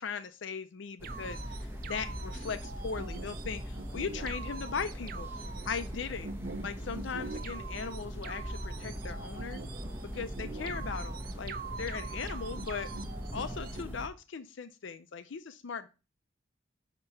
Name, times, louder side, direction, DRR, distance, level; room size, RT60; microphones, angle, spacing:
voice 1, 0.0-5.3 5.7-6.3 6.6-9.6 10.1-12.9 13.3-15.9, left 5 dB, 70° left, 10 dB, 0.5 m, -38 dB
sound 1, 1.0-14.1, equal, 10° right, 0.8 m, -40 dB
sound 2, 1.0-13.8, right 4 dB, 45° right, 0.5 m, -44 dB
8.7 x 2.9 x 5.6 m, 0.31 s
head